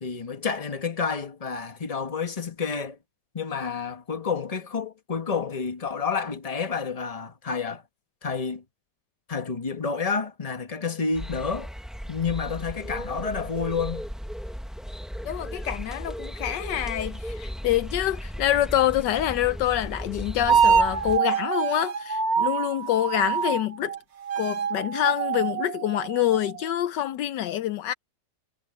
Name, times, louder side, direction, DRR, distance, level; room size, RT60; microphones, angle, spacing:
voice 1, 0.0-3.0 3.3-7.8 8.2-8.6 9.3-11.7 12.1-14.0, left 5 dB, 20° left, 1.4 m, -29 dB
sound 1, 11.1-21.2, equal, ahead, 0.6 m, -36 dB
voice 2, 15.2-23.9 24.4-27.9, left 12 dB, 75° left, 1.3 m, -26 dB
sound 2, 20.5-24.0 24.2-26.7, right 6 dB, 45° right, 1.0 m, -25 dB
omnidirectional pair, 1.9 m